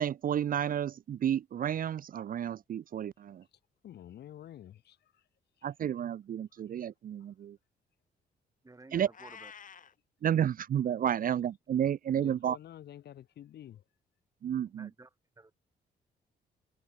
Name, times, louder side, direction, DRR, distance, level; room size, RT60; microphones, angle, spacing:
voice 1, 0.0-3.4 5.6-7.6 8.9-9.1 10.2-12.6 14.4-14.9, right 9 dB, 55° right, 0.7 m, -31 dB
voice 2, 3.8-5.2 5.6-5.7 7.2-7.3 11.2-11.3 12.1-13.8, left 11 dB, 75° left, 3.0 m, -49 dB
voice 3, 8.6-9.5 14.7-15.6, right 2 dB, 20° right, 5.3 m, -54 dB
Meow, 9.1-9.9, left 7 dB, 50° left, 2.0 m, -49 dB
cardioid pair, 85°, 17 cm